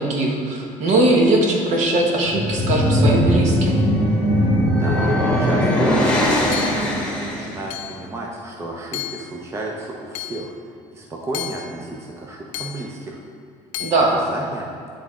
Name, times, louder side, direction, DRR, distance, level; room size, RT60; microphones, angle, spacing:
voice 1, 0.0-3.8 13.8-14.2, right 2 dB, 60° right, 0 dB, 1.3 m, -20 dB
sound 1, 2.2-7.6, equal, 10° left, 1.2 m, -19 dB
voice 2, 4.6-10.5 10.9-13.2 14.3-14.7, right 2 dB, 20° right, -1 dB, 0.7 m, -33 dB
Hammer / Chink clink, 6.5-7.0 7.7-8.1 8.9-9.4 10.2-10.5 11.3-11.8 12.5-12.9 13.7-14.0, left 13 dB, 70° left, 0.4 m, -32 dB
10.5 x 3.6 x 3.7 m, 2.4 s
cardioid pair, 130°, 14 cm